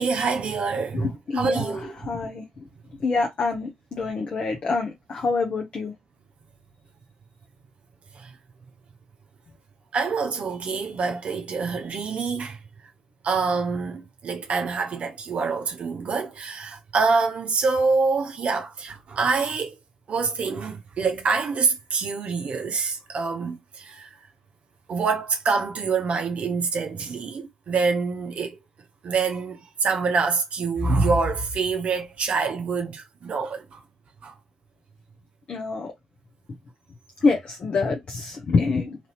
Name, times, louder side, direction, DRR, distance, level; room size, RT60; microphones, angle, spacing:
voice 1, 0.0-1.1 1.3-1.9 8.1-8.3 9.9-12.6 13.2-19.8 20.1-24.1 24.9-28.6 29.0-33.8 34.2-34.3, right 4 dB, 50° right, 0.7 m, -26 dB
voice 2, 0.9-2.4 3.0-5.9 35.5-35.9 37.2-39.0, left 4 dB, 45° left, 0.7 m, -26 dB
2.9 x 2.7 x 2.9 m
figure-of-eight pair, 40°, 3 cm